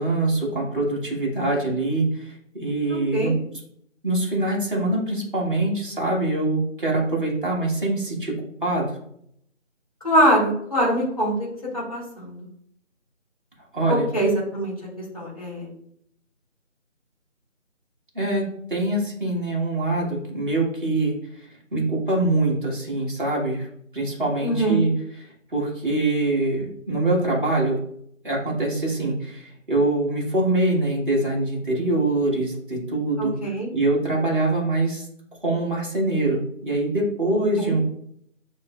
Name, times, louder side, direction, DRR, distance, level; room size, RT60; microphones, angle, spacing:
voice 1, 0.0-2.3 2.6-3.3 4.0-8.3 8.6-9.0 13.7-14.1 18.1-21.1 21.7-23.7 23.9-24.9 25.5-27.8 28.2-33.3 33.7-35.1 35.4-37.8, right 2 dB, 40° right, -5 dB, 1.4 m, -24 dB
voice 2, 2.9-3.3 10.0-12.5 13.9-15.7 24.4-24.8 33.2-33.7 37.6-37.7, right 1 dB, 30° left, -5 dB, 1.2 m, -23 dB
6.2 x 2.7 x 2.3 m, 0.69 s
figure-of-eight pair, 180°, 39 cm